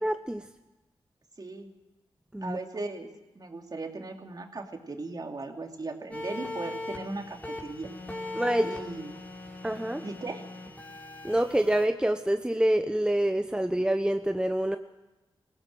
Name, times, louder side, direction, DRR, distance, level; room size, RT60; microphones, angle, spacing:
voice 1, 0.0-0.5 2.3-2.6 8.3-8.7 9.6-10.0 11.2-14.8, right 1 dB, 10° right, 7 dB, 1.0 m, -26 dB
voice 2, 1.4-1.7 2.4-3.1 3.3-7.9 8.6-9.2 10.0-10.4, right 3 dB, 45° right, 3 dB, 3.0 m, -37 dB
sound 1, 6.1-11.9, left 2 dB, 15° left, 4.2 m, -39 dB
20.0 x 16.5 x 7.8 m, 1.1 s
cardioid pair, 55°, 10 cm